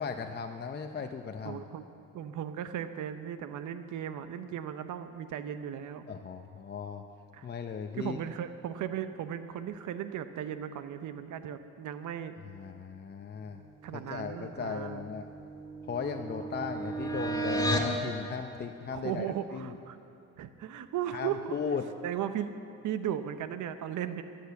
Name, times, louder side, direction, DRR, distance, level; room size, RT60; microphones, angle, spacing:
voice 1, 0.0-1.7 6.1-7.0 7.4-8.2 12.5-13.6 13.9-15.2 15.9-19.8 21.1-21.9, left 6 dB, 35° left, 5 dB, 0.7 m, -37 dB
voice 2, 1.5-1.8 2.1-6.1 7.3-7.5 8.0-12.3 13.8-15.0 18.9-20.0 20.4-21.6 22.0-22.5 22.8-24.2, right 10 dB, 80° right, 10 dB, 0.9 m, -36 dB
sound 1, 14.8-18.0, right 1 dB, 15° left, 1.9 m, -33 dB
14.5 x 10.5 x 7.0 m, 2.8 s
cardioid pair, 90°, 30 cm